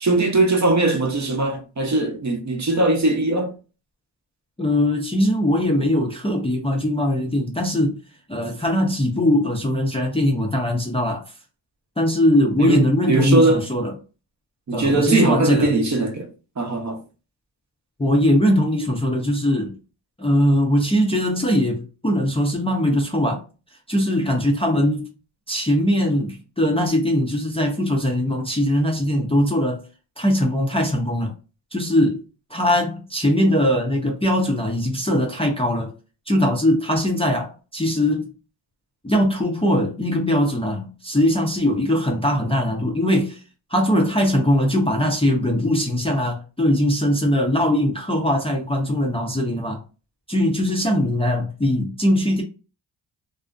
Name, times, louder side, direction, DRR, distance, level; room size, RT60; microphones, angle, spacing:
voice 1, 0.0-3.5 12.6-13.6 14.7-16.3 16.6-17.0, right 2 dB, 35° right, 0.7 m, -20 dB
voice 2, 4.6-8.0 8.3-11.2 12.0-13.9 14.7-15.7 18.0-19.8 20.2-23.4 23.9-25.1 25.5-29.8 30.2-31.3 31.7-32.2 32.5-35.9 36.3-38.3 39.0-43.4 43.7-49.8 50.3-52.4, left 1 dB, 10° left, 0.5 m, -21 dB
2.5 x 2.0 x 2.4 m
cardioid pair, 55°, 48 cm